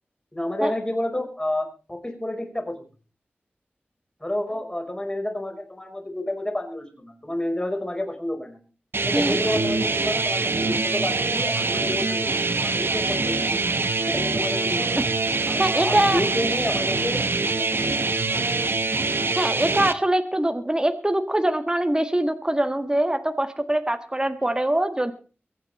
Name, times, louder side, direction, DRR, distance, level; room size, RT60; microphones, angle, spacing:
voice 1, 0.3-2.8 4.2-8.6 9.0-13.6 14.1-15.0 15.5-18.4, left 1 dB, 20° left, 4 dB, 5.3 m, -30 dB
sound 1, 8.9-19.9, right 3 dB, 65° right, 1.2 m, -24 dB
voice 2, 15.6-16.2 19.4-25.1, right 1 dB, 20° right, 7 dB, 1.7 m, -23 dB
23.5 x 9.4 x 4.3 m, 0.36 s
wide cardioid pair, 75°, 4 cm